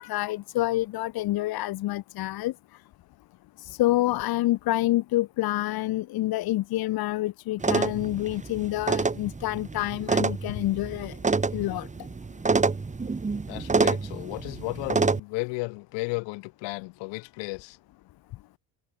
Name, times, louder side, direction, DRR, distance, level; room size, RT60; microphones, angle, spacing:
voice 1, 0.0-2.5 3.6-11.2 11.5-11.9, left 16 dB, 60° left, 2.3 m, -27 dB
sound 1, 7.6-15.2, right 4 dB, 15° right, 6.8 m, -27 dB
voice 2, 13.5-17.8, left 27 dB, 85° left, 5.1 m, -34 dB
cardioid pair, 135°, 42 cm